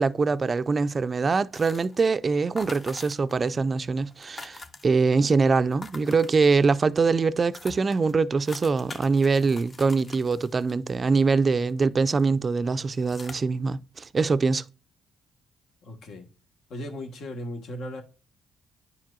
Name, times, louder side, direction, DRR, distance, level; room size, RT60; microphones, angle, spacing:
voice 1, 0.0-14.6, right 4 dB, 35° right, 0.4 m, -23 dB
sound 1, 1.5-2.1 2.6-3.5 3.8-3.9 4.1-5.2 5.7-6.8 7.2-7.3 7.5-11.8 12.2-12.5 12.9-13.3, left 3 dB, 35° left, 0.7 m, -44 dB
voice 2, 15.8-16.3 16.7-18.0, left 1 dB, 75° left, 1.4 m, -36 dB
9.7 x 4.6 x 2.4 m
cardioid pair, 90°, 0 cm